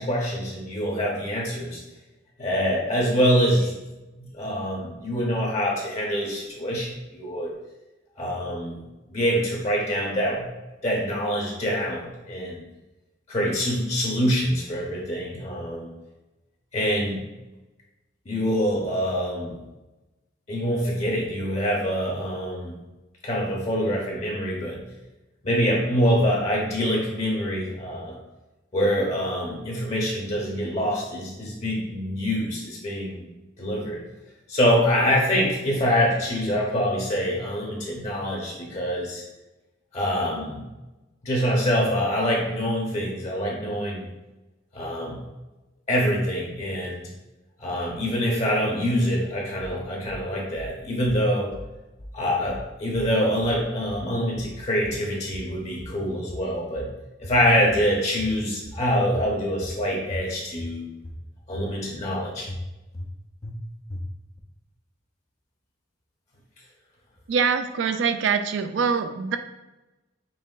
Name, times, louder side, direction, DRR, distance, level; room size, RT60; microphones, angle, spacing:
voice 1, 0.0-1.8 2.4-3.8 4.2-7.5 8.2-8.8 9.1-10.5 10.8-12.6 13.3-15.9 16.7-17.2 18.3-19.6 20.5-22.8 23.2-24.8 25.4-28.2 28.7-33.3 33.6-34.0 34.5-39.2 39.9-40.7 41.2-44.1 44.7-45.2 45.9-47.1 47.6-51.5 52.1-56.9 57.2-60.9 61.5-62.5, equal, 35° left, -2 dB, 0.7 m, -25 dB
sound 1, 49.6-50.2 50.6-51.2 51.5-52.2 52.5-53.2 53.4-54.1 54.4-55.1 55.3-56.0 56.3-57.0 57.2-57.9 58.2-58.8 59.1-59.8 60.1-60.7 61.0-61.7 62.0-62.1 62.5-63.1 63.4-63.6 63.9-64.4, left 1 dB, 20° left, 0.3 m, -38 dB
voice 2, 67.3-69.4, right 6 dB, 65° right, 8 dB, 0.3 m, -24 dB
5.5 x 3.0 x 2.4 m, 1.0 s
head